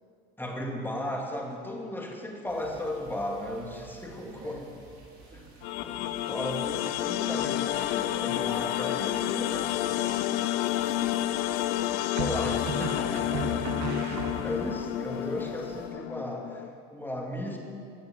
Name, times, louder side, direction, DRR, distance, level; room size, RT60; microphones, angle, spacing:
voice 1, 0.4-4.7 5.8-9.7 12.2-17.6, left 1 dB, 5° left, 0 dB, 2.2 m, -36 dB
sound 1, 2.4-15.9, right 3 dB, 80° right, 4.1 m, -54 dB
voice 2, 4.2-4.9 5.3-5.8 9.2-12.8, right 2 dB, 20° right, -3 dB, 2.1 m, -50 dB
sound 2, 5.6-16.7, left 14 dB, 65° left, 0.7 m, -30 dB
sound 3, 9.5-10.1 12.2-14.8, right 4 dB, 55° right, 2.0 m, -35 dB
17.5 x 6.5 x 7.5 m, 2.4 s
supercardioid pair, 110°, 33 cm